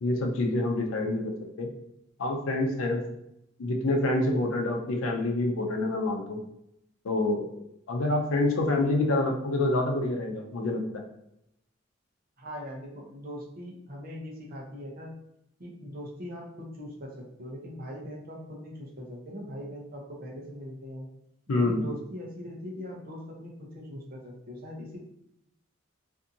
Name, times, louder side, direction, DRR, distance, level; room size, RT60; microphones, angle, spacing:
voice 1, 0.0-1.7 2.2-3.0 3.6-6.4 7.0-7.5 7.9-10.8 21.5-21.9, left 2 dB, 80° left, 3 dB, 0.5 m, -27 dB
voice 2, 12.4-15.1 15.6-21.1 21.5-25.0, equal, 45° right, -2 dB, 0.6 m, -41 dB
2.6 x 2.4 x 2.6 m, 0.80 s
head